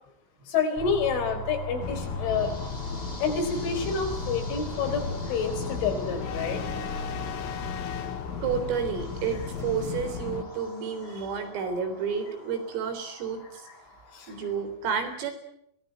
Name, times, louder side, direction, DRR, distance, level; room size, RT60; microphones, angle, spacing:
voice 1, 0.5-2.5 3.2-6.6 14.1-14.3, left 5 dB, 70° left, 4 dB, 6.3 m, -28 dB
sound 1, 0.8-14.6, equal, 10° left, 6.7 m, -40 dB
sound 2, 1.8-10.5, left 7 dB, 90° left, 4.2 m, -35 dB
voice 2, 8.4-13.7 14.3-15.3, right 6 dB, 85° right, 7 dB, 6.3 m, -31 dB
23.5 x 19.0 x 9.4 m, 0.74 s
omnidirectional pair, 5.7 m